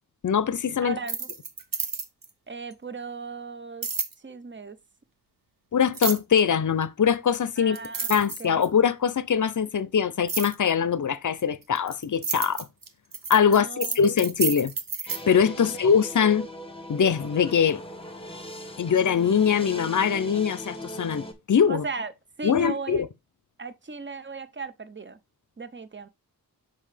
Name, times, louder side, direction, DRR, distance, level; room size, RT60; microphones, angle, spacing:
voice 1, 0.2-1.0 5.7-7.8 8.1-12.7 13.3-14.7 15.0-16.5 16.9-17.8 18.8-21.8 22.4-23.1, left 7 dB, 55° left, 0.6 m, -22 dB
voice 2, 0.8-1.3 2.5-3.9 4.2-4.8 7.6-8.1 8.4-8.6 13.5-14.0 15.6-15.7 21.7-22.1 22.4-23.0 23.6-25.2 25.6-26.1, right 4 dB, 30° right, 0.6 m, -36 dB
sound 1, 1.0-2.3 3.8-4.1 5.9-6.4 7.3-7.4 7.7-8.8 10.3-10.5 11.4-15.2, right 5 dB, 60° right, 0.9 m, -30 dB
sound 2, 15.1-21.3, equal, 15° left, 1.2 m, -39 dB
5.5 x 5.5 x 3.3 m
wide cardioid pair, 60°, 37 cm